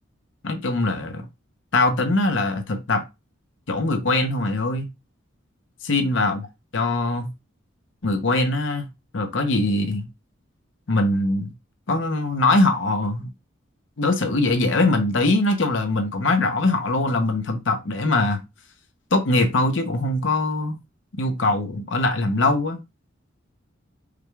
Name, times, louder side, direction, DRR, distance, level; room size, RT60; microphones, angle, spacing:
voice 1, 0.4-1.2 1.7-3.0 3.7-4.9 5.8-6.5 6.7-7.3 8.0-8.9 9.1-10.1 10.9-11.5 11.9-13.3 14.0-18.4 19.1-20.8 21.2-22.8, left 2 dB, 65° left, 0.8 m, -22 dB
4.9 x 2.3 x 3.3 m
head